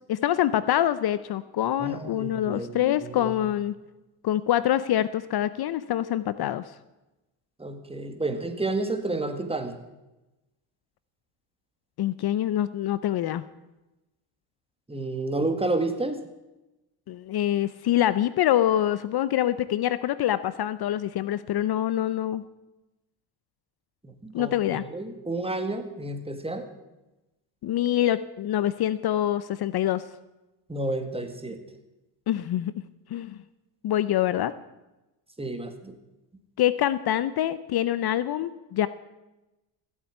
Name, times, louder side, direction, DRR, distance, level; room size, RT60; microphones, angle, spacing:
voice 1, 0.1-3.7 4.2-6.6 12.0-13.4 17.1-22.4 24.3-24.8 27.6-30.0 32.3-32.7 33.1-33.4 33.8-34.5 36.6-38.9, left 12 dB, 55° left, 16 dB, 0.7 m, -25 dB
voice 2, 1.8-3.3 7.6-9.7 14.9-16.2 24.0-26.7 30.7-31.6 35.4-36.0, right 2 dB, 10° right, 8 dB, 1.9 m, -30 dB
15.5 x 8.2 x 9.4 m, 1.0 s
cardioid pair, 95°, 47 cm